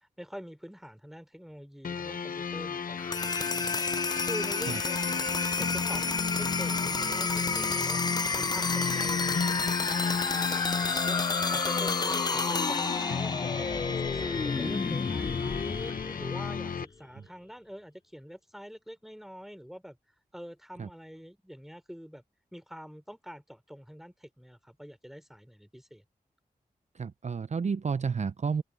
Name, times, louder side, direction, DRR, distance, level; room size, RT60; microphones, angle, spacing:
voice 1, 0.0-3.8 4.2-5.3 5.6-20.0 20.3-22.2 22.5-26.0, equal, ahead, 3.3 m, -45 dB
sound 1, 1.8-16.9, left 6 dB, 70° left, 0.8 m, -34 dB
sound 2, 3.0-16.8, left 4 dB, 25° left, 0.4 m, -31 dB
voice 2, 27.0-28.6, right 5 dB, 50° right, 0.5 m, -31 dB
cardioid pair, 60°, 15 cm